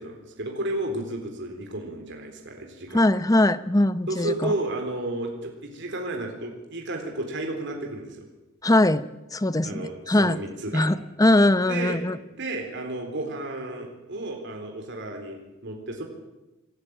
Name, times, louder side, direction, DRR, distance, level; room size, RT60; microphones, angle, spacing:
voice 1, 0.0-3.1 4.1-8.3 9.6-10.9 11.7-12.0 12.3-16.0, right 2 dB, 60° right, 3 dB, 3.9 m, -32 dB
voice 2, 2.9-4.5 8.6-9.0 9.3-10.4 10.7-12.2, left 1 dB, 15° left, 14 dB, 0.7 m, -21 dB
25.5 x 13.0 x 8.9 m, 1.0 s
head